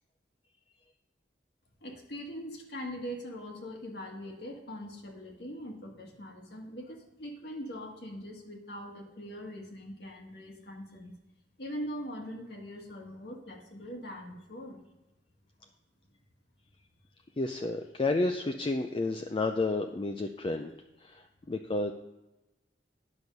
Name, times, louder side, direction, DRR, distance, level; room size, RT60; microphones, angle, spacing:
voice 1, 1.8-11.1 11.6-14.8, equal, 60° left, 1 dB, 1.6 m, -42 dB
voice 2, 17.4-20.7 21.0-21.9, left 2 dB, 25° left, 4 dB, 0.4 m, -31 dB
9.9 x 6.2 x 5.3 m, 0.98 s
head